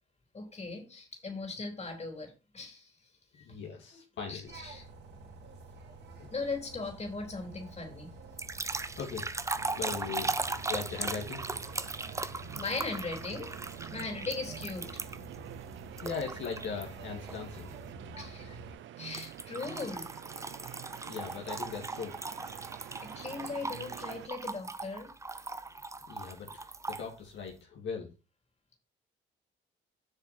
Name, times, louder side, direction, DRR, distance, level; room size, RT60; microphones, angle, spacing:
voice 1, 0.3-2.9 3.3-3.6 4.3-4.9 6.3-8.2 12.5-13.5 13.9-15.0 18.2-18.6 19.0-20.1 23.0-25.1, left 3 dB, 35° left, 4 dB, 3.5 m, -39 dB
voice 2, 3.4-4.5 6.2-6.3 8.9-9.4 9.8-11.4 16.0-17.7 21.1-22.1 26.1-28.1, left 6 dB, 70° left, 0 dB, 2.4 m, -39 dB
sound 1, 4.4-18.7, right 1 dB, 60° right, 2.7 m, -49 dB
sound 2, 8.4-15.3 16.0-16.8 17.3-17.6 19.1-27.1, right 3 dB, 15° right, 0.7 m, -38 dB
sound 3, 9.5-24.3, right 12 dB, 75° right, 0.8 m, -47 dB
7.6 x 6.3 x 4.4 m, 0.30 s
cardioid pair, 90°, 20 cm